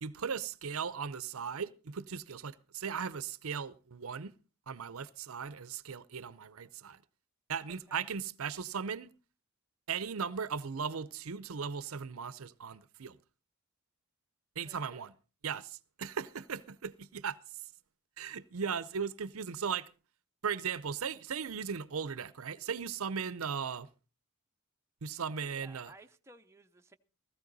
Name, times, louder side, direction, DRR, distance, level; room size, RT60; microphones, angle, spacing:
voice 1, 0.0-4.3 4.7-7.0 7.5-9.1 9.9-13.2 14.6-15.1 15.4-17.4 18.2-19.9 20.4-23.9 25.0-25.9, right 6 dB, 70° right, 0.7 m, -37 dB
voice 2, 7.7-8.1 14.6-15.1 25.2-27.0, right 2 dB, 15° right, 0.7 m, -57 dB
16.5 x 14.5 x 4.0 m
head